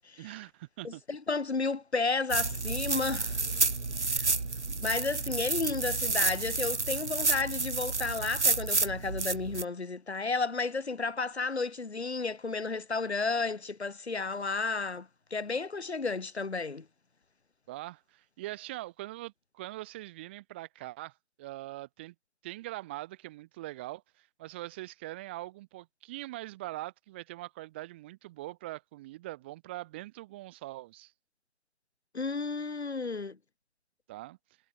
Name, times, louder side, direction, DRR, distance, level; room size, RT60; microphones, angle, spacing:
voice 1, 0.2-1.0 4.5-4.6 17.7-22.1 22.4-31.1 34.1-34.4, right 17 dB, 10° right, 2.1 m, -42 dB
voice 2, 0.8-3.4 4.0-4.3 4.7-16.8 32.1-33.4, left 4 dB, 70° left, 3.0 m, -32 dB
sound 1, 2.3-9.6, right 3 dB, 90° right, 2.6 m, -30 dB
figure-of-eight pair, 170°, 34 cm